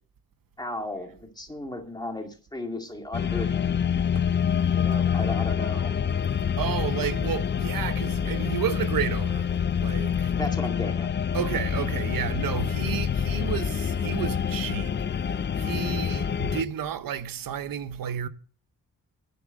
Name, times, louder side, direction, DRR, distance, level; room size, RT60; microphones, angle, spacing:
voice 1, 0.6-3.9 4.7-5.9 10.3-11.1, left 1 dB, 10° left, 2.0 m, -35 dB
sound 1, 3.1-16.6, left 7 dB, 35° left, 0.5 m, -26 dB
sound 2, 4.1-4.6 4.9-5.4 6.1-6.5 6.9-7.5 8.3-8.7 9.5-9.8 10.6-11.0, right 4 dB, 45° right, 1.5 m, -50 dB
voice 2, 6.3-9.5 9.8-10.4 11.3-18.3, right 9 dB, 85° right, 0.9 m, -32 dB
10.0 x 7.3 x 7.7 m
wide cardioid pair, 120°, 33 cm